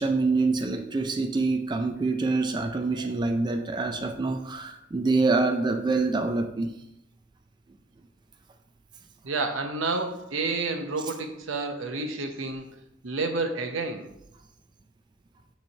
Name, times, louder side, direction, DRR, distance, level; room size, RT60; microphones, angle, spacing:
voice 1, 0.0-6.7, right 3 dB, 20° right, 5 dB, 0.4 m, -26 dB
voice 2, 9.2-12.7 13.0-14.1, right 3 dB, 80° right, 6 dB, 0.8 m, -30 dB
6.6 x 3.2 x 5.4 m, 0.81 s
head